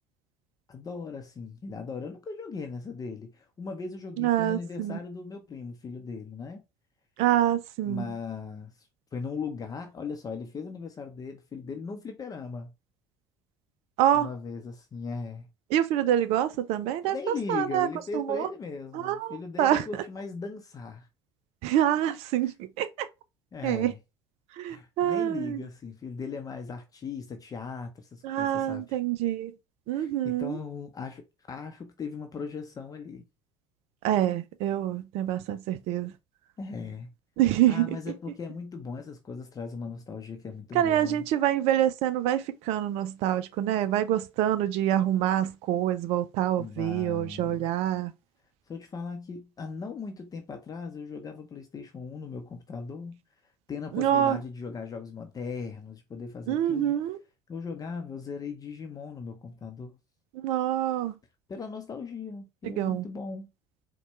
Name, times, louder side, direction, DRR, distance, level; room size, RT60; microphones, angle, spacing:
voice 1, 0.7-6.6 7.8-12.7 14.1-15.5 17.0-21.1 22.4-22.5 23.5-24.0 24.7-29.0 29.9-31.2 31.5-33.2 36.6-37.1 37.7-41.2 46.6-47.7 48.7-53.2 53.7-57.1 57.5-60.0 61.5-63.5, left 5 dB, 30° left, 0.6 m, -38 dB
voice 2, 4.2-4.9 7.2-8.0 14.0-14.3 15.7-17.9 18.1-18.5 18.9-19.8 21.6-23.1 23.6-23.9 24.6-25.6 28.2-29.5 29.9-30.6 34.0-36.1 37.4-37.9 40.7-48.1 53.9-54.4 56.5-57.2 60.4-61.1 62.8-63.0, right 11 dB, 55° right, 0.4 m, -26 dB
4.2 x 2.2 x 3.0 m
figure-of-eight pair, 60°, 13 cm